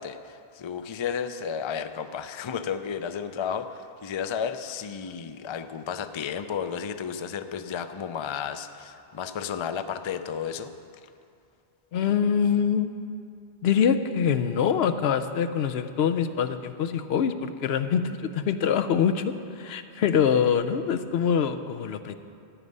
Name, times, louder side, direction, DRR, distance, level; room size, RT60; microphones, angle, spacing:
voice 1, 0.0-10.7, left 7 dB, 45° left, 10 dB, 0.4 m, -33 dB
voice 2, 11.9-12.9 13.6-22.1, left 7 dB, 85° left, 9 dB, 0.9 m, -24 dB
13.0 x 9.6 x 5.4 m, 2.5 s
omnidirectional pair, 1.0 m